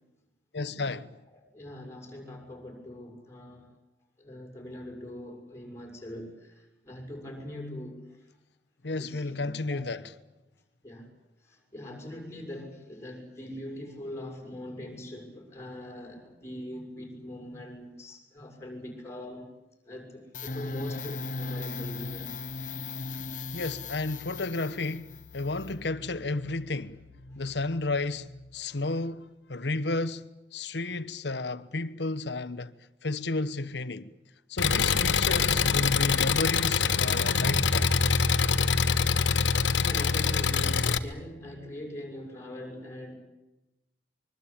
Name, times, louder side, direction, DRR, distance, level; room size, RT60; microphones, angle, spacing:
voice 1, 0.5-1.2 8.8-10.0 23.5-25.1 25.3-27.0 27.4-28.3 28.5-30.2 30.5-32.7 33.0-34.1 34.5-37.9, left 2 dB, 65° left, 1.1 m, -32 dB
voice 2, 1.3-3.7 4.2-8.0 8.9-10.1 10.8-11.1 11.5-19.5 19.9-22.3 28.5-28.6 39.5-43.1, left 1 dB, 15° left, 6.8 m, -42 dB
sound 1, 20.3-28.8, left 3 dB, 45° left, 1.3 m, -39 dB
Engine, 34.6-41.0, left 5 dB, 90° left, 1.2 m, -24 dB
25.0 x 22.5 x 8.8 m
head